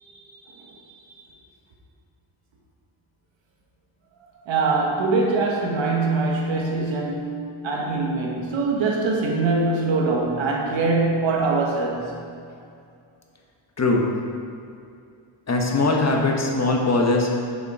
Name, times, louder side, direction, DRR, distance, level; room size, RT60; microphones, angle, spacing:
voice 1, 0.0-0.8 4.5-12.1, right 3 dB, 75° right, -1 dB, 1.6 m, -23 dB
voice 2, 15.5-17.4, left 2 dB, 35° left, 0 dB, 1.3 m, -20 dB
7.0 x 6.7 x 5.0 m, 2.4 s
cardioid pair, 85°, 46 cm